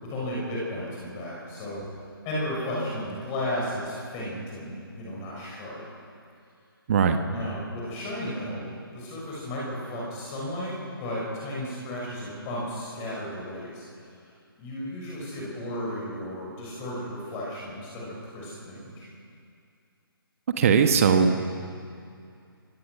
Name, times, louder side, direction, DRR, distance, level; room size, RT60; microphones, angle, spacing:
voice 1, 0.0-1.8 2.2-5.8 7.2-13.8 14.6-19.1, left 1 dB, 20° left, -5 dB, 6.0 m, -34 dB
voice 2, 20.6-21.5, right 6 dB, 35° right, 7 dB, 1.3 m, -19 dB
24.0 x 18.0 x 6.3 m, 2.4 s
figure-of-eight pair, 140°, 13 cm